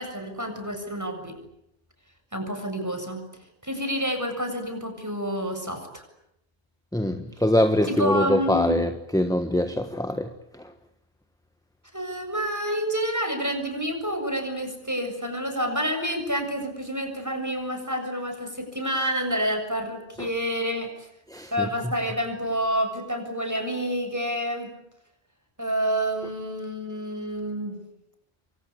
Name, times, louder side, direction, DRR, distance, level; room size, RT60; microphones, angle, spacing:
voice 1, 0.0-1.3 2.3-3.2 3.6-6.0 7.9-8.8 11.9-20.9 21.5-24.7 25.6-27.8, equal, 15° right, 7.1 m, -28 dB
voice 2, 6.9-10.7 20.2-20.3 21.3-21.9, left 1 dB, 5° left, 1.4 m, -24 dB
28.0 x 24.0 x 8.6 m
omnidirectional pair, 1.1 m